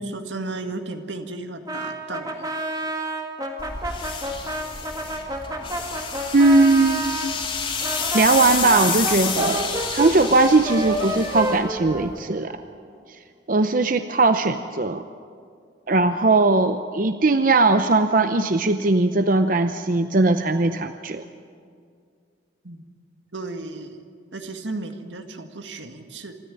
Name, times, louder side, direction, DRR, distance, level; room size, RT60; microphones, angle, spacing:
voice 1, 0.0-2.5 22.6-22.8 23.3-24.0 24.3-26.3, right 2 dB, 85° right, 6 dB, 1.9 m, -34 dB
Brass instrument, 1.7-7.3 7.8-12.6, right 1 dB, 20° right, 1.9 m, -29 dB
sound 1, 3.6-12.2, left 6 dB, 30° left, 2.9 m, -30 dB
voice 2, 6.3-7.1 8.1-12.6 13.5-15.0 15.9-21.2, right 3 dB, 50° right, 9 dB, 0.7 m, -19 dB
26.5 x 13.5 x 9.8 m, 2.2 s
head